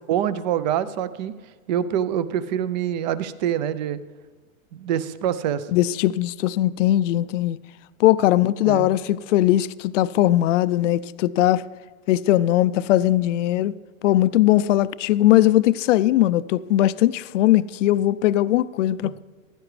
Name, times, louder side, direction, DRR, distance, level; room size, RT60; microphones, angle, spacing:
voice 1, 0.0-1.3 1.7-4.0 4.7-5.7 8.7-8.9 19.0-19.1, right 10 dB, 35° right, 0.4 m, -25 dB
voice 2, 5.7-7.6 8.0-11.6 12.1-13.7 14.0-19.2, left 14 dB, 65° left, 0.5 m, -19 dB
15.0 x 12.0 x 3.2 m
hypercardioid pair, 140°, 40 cm